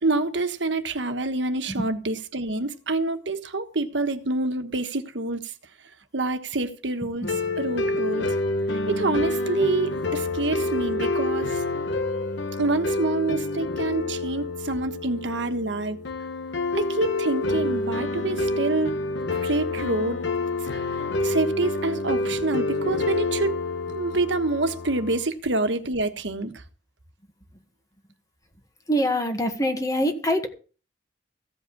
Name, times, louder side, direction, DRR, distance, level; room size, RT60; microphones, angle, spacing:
voice 1, 0.0-5.5 6.1-7.3 7.6-8.4 8.9-11.6 12.6-16.0 16.7-18.9 19.4-20.2 21.2-23.6 23.9-26.5, right 2 dB, 90° right, 1.3 m, -27 dB
sound 1, 7.2-25.2, left 2 dB, 80° left, 1.2 m, -28 dB
voice 2, 28.9-30.5, equal, 20° left, 1.6 m, -24 dB
15.5 x 5.3 x 8.5 m
head